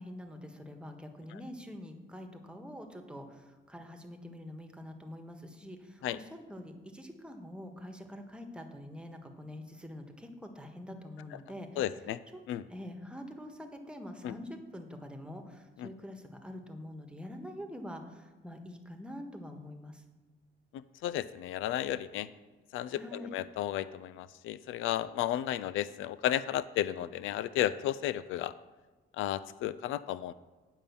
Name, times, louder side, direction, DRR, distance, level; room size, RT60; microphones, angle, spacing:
voice 1, 0.0-11.9 12.3-12.4 12.7-20.0 22.8-23.4, left 1 dB, 5° right, 4 dB, 1.4 m, -45 dB
voice 2, 11.8-12.2 12.5-12.6 14.2-14.3 15.8-15.9 21.0-22.3 22.7-28.5 29.2-30.3, left 12 dB, 85° left, 16 dB, 0.4 m, -33 dB
9.1 x 5.4 x 6.9 m, 1.3 s
cardioid pair, 90°, 20 cm